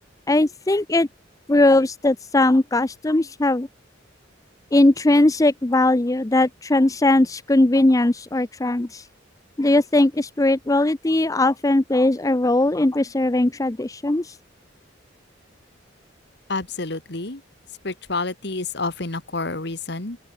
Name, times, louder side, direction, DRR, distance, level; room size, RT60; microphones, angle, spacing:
voice 1, 0.3-1.1 1.5-3.7 4.7-9.0 9.6-14.4, left 2 dB, 15° left, 0.5 m, -19 dB
voice 2, 16.5-17.4 17.7-20.2, left 3 dB, 60° left, 2.0 m, -29 dB
open air
head